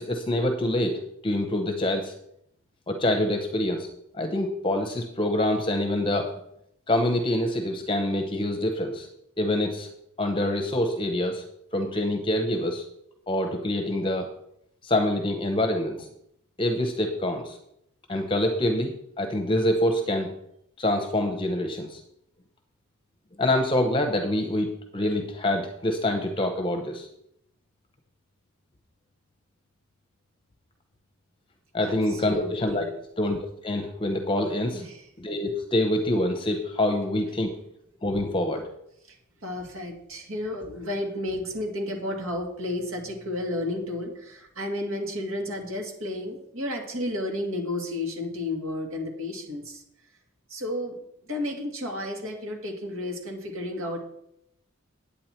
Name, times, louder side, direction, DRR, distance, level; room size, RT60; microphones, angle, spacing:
voice 1, 0.0-2.1 2.9-3.9 4.1-6.3 6.9-9.1 9.4-9.9 10.2-11.4 11.7-12.8 13.3-14.3 14.8-16.1 16.6-17.6 18.1-20.3 20.8-22.0 23.4-27.1 31.7-32.8 33.2-33.4 33.6-34.8 35.2-37.5 38.0-38.6, left 1 dB, 25° left, 5 dB, 0.8 m, -26 dB
voice 2, 31.8-32.9 34.7-35.0 39.1-49.8 50.5-54.0, left 1 dB, 80° right, 1 dB, 2.4 m, -32 dB
9.2 x 8.5 x 4.4 m, 0.75 s
head